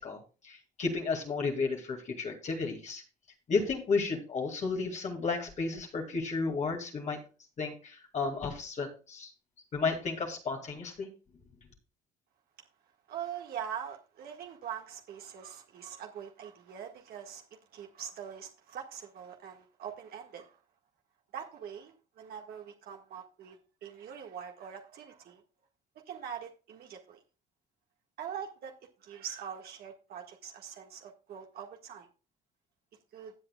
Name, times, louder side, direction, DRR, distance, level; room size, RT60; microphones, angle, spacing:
voice 1, 0.0-3.0 3.5-7.2 7.6-9.3 9.7-11.1, left 4 dB, 45° left, 2 dB, 2.2 m, -33 dB
voice 2, 13.1-20.6 21.3-25.4 26.1-27.2 28.2-32.1 33.1-33.3, right 8 dB, 65° right, 2 dB, 1.7 m, -43 dB
16.0 x 7.9 x 2.3 m, 0.33 s
cardioid pair, 110°, 17 cm